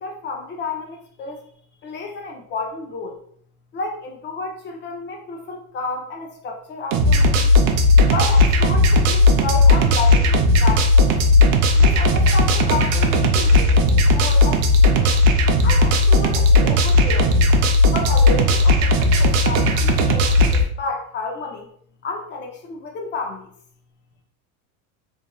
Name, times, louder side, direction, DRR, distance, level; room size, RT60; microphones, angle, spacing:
voice 1, 0.0-1.4 1.8-3.2 3.7-7.6 8.1-11.2 11.8-14.7 15.0-15.2 15.6-17.5 17.9-21.7 22.0-23.5, left 4 dB, 25° left, 2 dB, 0.5 m, -31 dB
sound 1, 6.9-20.6, left 2 dB, 65° right, 0.6 m, -16 dB
2.9 x 2.6 x 2.2 m, 0.62 s
supercardioid pair, 130°, 44 cm